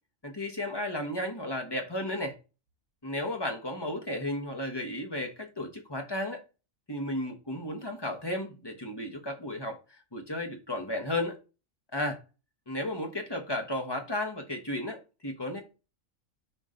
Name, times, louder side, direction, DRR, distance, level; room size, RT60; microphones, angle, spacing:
voice 1, 0.2-2.3 3.0-6.4 6.9-11.4 11.9-12.2 12.7-15.6, left 1 dB, 20° left, 1.3 m, -34 dB
5.8 x 4.5 x 3.9 m
omnidirectional pair, 1.4 m